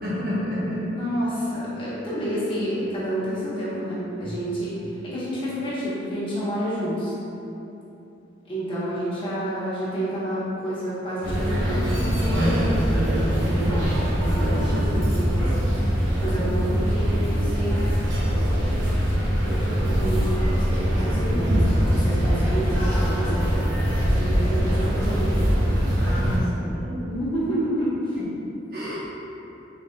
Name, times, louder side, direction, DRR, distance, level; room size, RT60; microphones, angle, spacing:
voice 1, 0.0-0.9 4.2-4.3 26.0-27.1 28.7-29.0, equal, 50° right, -8 dB, 0.9 m, -29 dB
voice 2, 0.9-4.7 5.0-7.1 8.5-15.5 16.2-17.8 19.2-23.4 24.2-25.4 27.1-28.2, equal, 30° left, -10 dB, 1.0 m, -29 dB
sound 1, 11.2-26.4, equal, 90° right, 0.8 m, -22 dB
3.7 x 3.5 x 2.3 m, 3.0 s
head